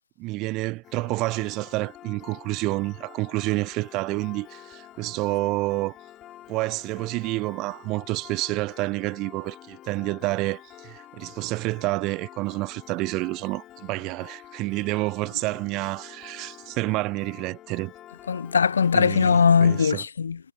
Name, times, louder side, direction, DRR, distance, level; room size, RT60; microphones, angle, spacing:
voice 1, 0.2-6.0 6.5-17.9 18.9-20.0, right 21 dB, 20° right, 0.5 m, -29 dB
Piano, 0.8-19.9, left 13 dB, 15° left, 3.6 m, -48 dB
voice 2, 18.3-20.4, left 6 dB, 50° left, 0.9 m, -20 dB
figure-of-eight pair, 140°, 0 cm